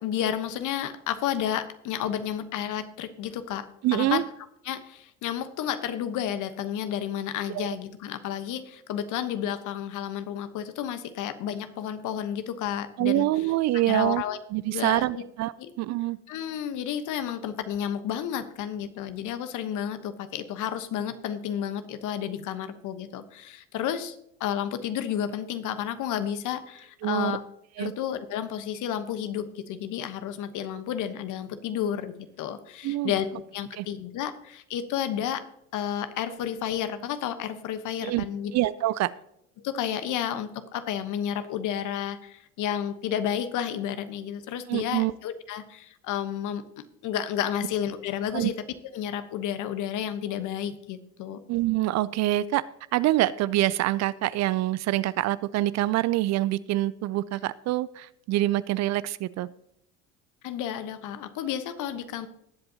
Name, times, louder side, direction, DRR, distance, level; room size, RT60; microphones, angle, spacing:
voice 1, 0.0-4.3 4.6-13.3 13.9-14.4 14.7-15.2 15.6-15.7 16.3-27.4 27.8-35.4 35.7-38.5 39.6-48.5 48.9-51.4 60.4-62.3, left 9 dB, 55° left, 11 dB, 1.1 m, -31 dB
voice 2, 3.8-4.2 7.5-7.7 13.0-14.2 14.5-16.2 27.0-27.4 27.8-27.9 32.8-33.1 33.8-33.9 38.0-38.2 38.5-39.1 44.7-45.1 48.3-48.5 51.5-52.6 52.9-59.5, right 16 dB, 50° right, 18 dB, 0.5 m, -25 dB
18.5 x 7.7 x 2.9 m, 0.77 s
hypercardioid pair, 70°, 36 cm